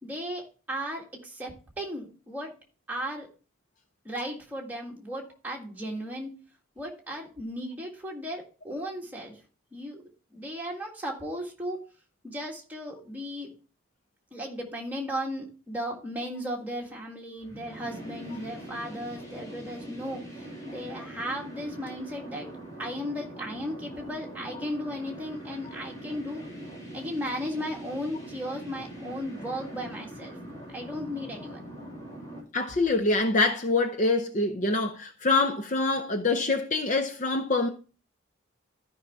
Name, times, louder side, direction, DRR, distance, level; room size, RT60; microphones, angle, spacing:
voice 1, 0.0-2.5 2.9-3.3 4.0-6.3 6.7-9.3 9.7-10.0 10.3-11.8 12.2-13.5 14.3-22.5 22.8-26.4 26.9-30.3 30.7-31.6, equal, 10° right, 1.7 m, -35 dB
sound 1, 17.4-32.4, right 1 dB, 20° left, 3.3 m, -42 dB
voice 2, 32.5-37.7, left 3 dB, 35° left, 0.6 m, -25 dB
13.0 x 5.5 x 3.4 m
head